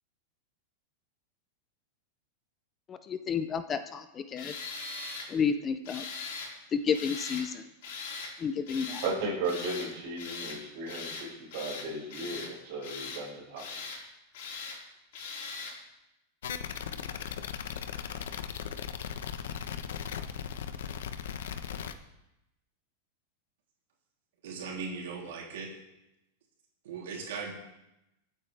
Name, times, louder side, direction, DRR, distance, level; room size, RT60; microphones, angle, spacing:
voice 1, 2.9-4.5 5.3-6.0 6.7-7.6 8.4-9.0, left 6 dB, 15° left, 10 dB, 0.5 m, -31 dB
Tools, 4.4-5.3 5.8-6.5 6.9-7.5 7.8-8.3 8.7-9.1 9.4-9.9 10.2-10.6 10.9-11.3 11.5-12.5 12.8-13.2 13.6-14.0 14.3-14.8 15.1-15.8, left 4 dB, 60° left, 4.4 m, -40 dB
voice 2, 9.0-13.6, right 2 dB, 50° right, -3 dB, 6.0 m, -35 dB
sound 1, 16.4-21.9, left 8 dB, 90° left, 1.0 m, -37 dB
voice 3, 24.4-25.7 26.8-27.5, right 5 dB, 75° right, -2 dB, 3.2 m, -38 dB
24.5 x 8.7 x 3.4 m, 0.91 s
supercardioid pair, 170°, 0 cm